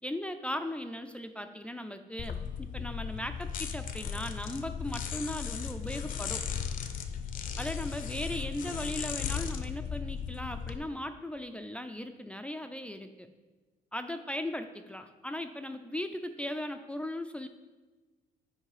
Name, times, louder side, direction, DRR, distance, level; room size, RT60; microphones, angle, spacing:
voice 1, 0.0-6.5 7.6-13.3 13.9-17.5, left 1 dB, 5° left, 8 dB, 0.4 m, -38 dB
sound 1, 2.2-10.8, left 7 dB, 55° left, 0.6 m, -36 dB
7.2 x 4.8 x 4.8 m, 1.3 s
cardioid pair, 110°, 17 cm